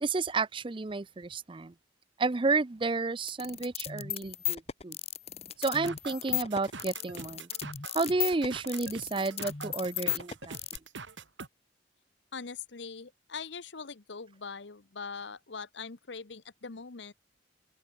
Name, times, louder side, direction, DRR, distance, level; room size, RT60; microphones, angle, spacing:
voice 1, 0.0-1.7 2.2-5.0 5.6-7.5 7.9-10.6, right 3 dB, 25° right, 0.5 m, -31 dB
sound 1, 3.3-10.8, left 11 dB, 35° left, 1.0 m, -35 dB
sound 2, 5.6-11.5, right 4 dB, 85° right, 3.2 m, -44 dB
voice 2, 12.3-17.1, left 5 dB, 75° left, 1.0 m, -42 dB
open air
head